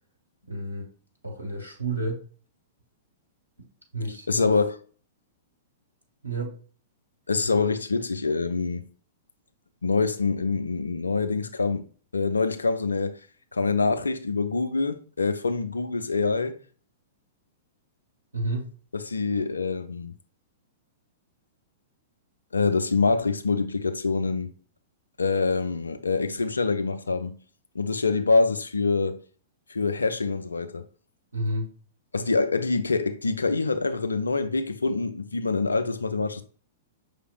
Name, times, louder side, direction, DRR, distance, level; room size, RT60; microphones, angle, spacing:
voice 1, 0.5-0.9 1.2-2.2 3.9-4.6 6.2-6.5 18.3-18.7 31.3-31.7, right 1 dB, 85° right, 1.0 m, -30 dB
voice 2, 4.3-4.8 7.3-8.8 9.8-11.9 12.1-13.2 13.5-16.6 18.9-20.1 22.5-24.5 25.2-27.4 27.7-29.2 29.7-30.8 32.1-36.4, left 4 dB, 80° left, 0.5 m, -25 dB
5.7 x 3.3 x 2.4 m
figure-of-eight pair, 105°, 0 cm